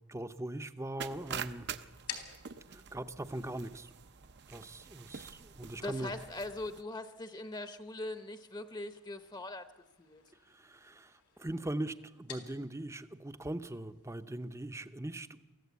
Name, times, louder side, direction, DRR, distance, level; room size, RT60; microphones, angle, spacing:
voice 1, 0.1-1.7 2.7-3.9 4.5-6.1 10.4-15.4, right 1 dB, 15° right, 11 dB, 0.7 m, -40 dB
sound 1, 0.5-14.9, left 9 dB, 85° left, 3.9 m, -54 dB
sound 2, 1.0-6.8, right 7 dB, 50° right, 0.7 m, -46 dB
voice 2, 5.8-9.7 10.0-10.2, left 2 dB, 20° left, 10 dB, 0.8 m, -41 dB
23.5 x 15.0 x 8.3 m, 1.1 s
head